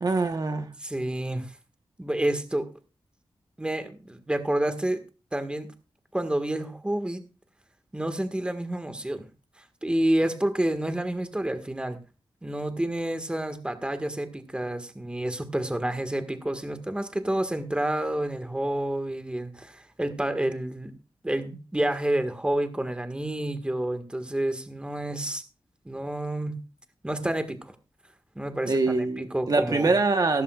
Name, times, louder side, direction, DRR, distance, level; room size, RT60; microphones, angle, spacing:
voice 1, 0.0-0.7 28.7-30.4, right 3 dB, 45° right, 5 dB, 1.1 m, -24 dB
voice 2, 0.8-1.5 2.0-2.7 3.6-5.0 5.3-5.7 6.1-7.2 7.9-9.3 9.8-12.0 12.4-20.9 21.2-25.4 25.9-26.6 27.0-27.6 28.4-29.9, right 1 dB, 10° right, 8 dB, 1.6 m, -29 dB
16.0 x 14.5 x 2.4 m, 0.32 s
wide cardioid pair, 135°, 9 cm